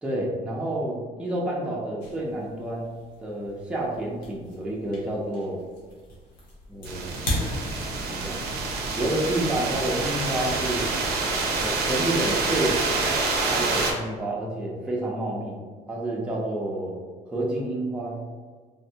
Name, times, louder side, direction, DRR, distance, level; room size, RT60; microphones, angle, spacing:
voice 1, 0.0-2.9 3.2-5.6 6.7-7.2 8.1-8.4 9.0-10.9 11.6-15.6 15.9-17.0 17.3-18.2, right 1 dB, 5° right, -4 dB, 0.6 m, -29 dB
sound 1, 2.0-8.4, left 1 dB, 80° left, 1.1 m, -37 dB
sound 2, 6.9-13.9, right 3 dB, 70° right, 0.6 m, -27 dB
3.5 x 2.2 x 2.7 m, 1.5 s
cardioid pair, 110°, 17 cm